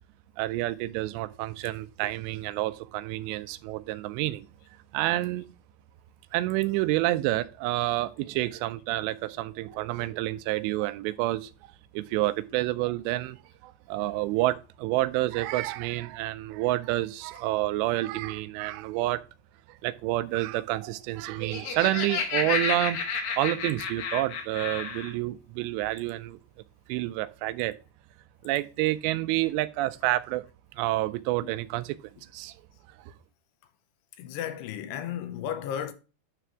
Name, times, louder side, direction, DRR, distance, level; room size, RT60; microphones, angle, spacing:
voice 1, 0.4-4.5 4.9-5.5 6.3-11.5 11.9-13.4 13.6-19.2 19.8-23.0 23.4-26.4 26.9-27.7 28.4-30.4 30.8-32.0 32.3-32.5, right 17 dB, 85° right, 2.8 m, -28 dB
Laughter, 21.3-25.1, left 5 dB, 65° left, 2.7 m, -31 dB
voice 2, 34.2-35.9, left 9 dB, 80° left, 2.7 m, -34 dB
9.8 x 3.4 x 6.0 m
omnidirectional pair, 4.9 m